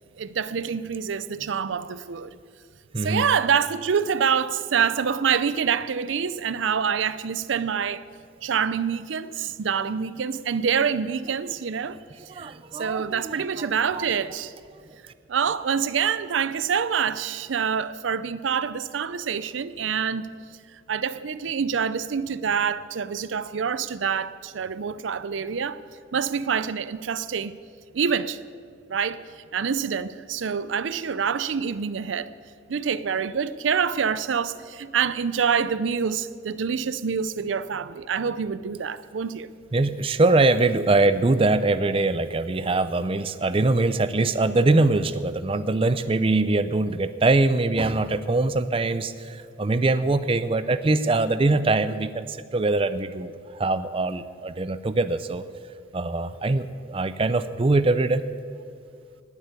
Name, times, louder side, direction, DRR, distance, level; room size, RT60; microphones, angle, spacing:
voice 1, 0.2-2.3 3.0-8.0 8.4-12.0 12.3-14.5 15.3-20.3 20.9-25.8 26.1-27.5 27.9-28.4 28.9-29.2 29.5-32.3 32.7-39.5, right 7 dB, 85° right, 0.5 m, -26 dB
voice 2, 2.9-3.3 12.3-14.2 39.7-55.4 55.9-58.2, right 2 dB, 30° right, 0.5 m, -23 dB
18.5 x 8.1 x 8.2 m
head